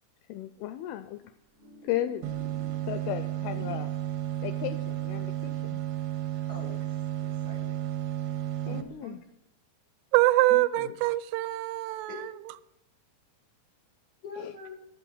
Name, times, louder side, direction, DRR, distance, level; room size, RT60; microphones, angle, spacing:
voice 1, 0.3-1.2 1.8-2.3 2.9-3.9 4.4-5.8 8.7-9.2 14.4-14.5, left 13 dB, 85° left, 10 dB, 2.2 m, -35 dB
sound 1, 1.2-3.9 4.2-4.3, equal, 55° right, 1.7 m, -54 dB
sound 2, 2.2-8.8, right 13 dB, 70° right, 2.5 m, -33 dB
voice 2, 6.5-7.8 8.7-9.2 10.5-10.9 12.1-12.2 14.2-14.8, left 4 dB, 70° left, -1 dB, 1.1 m, -44 dB
voice 3, 10.1-12.4, right 18 dB, 90° right, 15 dB, 2.7 m, -24 dB
11.0 x 7.8 x 6.3 m, 0.86 s
omnidirectional pair, 4.8 m